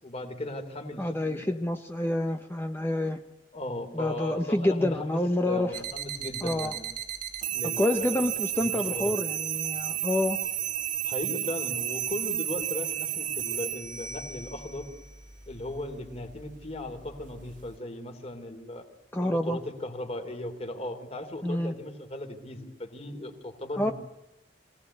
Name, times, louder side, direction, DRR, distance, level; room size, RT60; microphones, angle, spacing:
voice 1, 0.0-1.6 3.5-6.9 7.5-8.2 8.6-9.1 11.0-14.9 15.5-18.8 19.2-23.9, left 1 dB, 35° left, 5 dB, 3.2 m, -37 dB
voice 2, 1.0-3.2 3.9-5.8 6.4-6.8 7.8-10.4 19.1-19.6 21.4-21.7 23.8-23.9, left 1 dB, 10° left, 5 dB, 0.9 m, -28 dB
sound 1, 5.7-17.7, right 10 dB, 45° right, 2.0 m, -33 dB
24.0 x 18.0 x 9.8 m, 0.86 s
head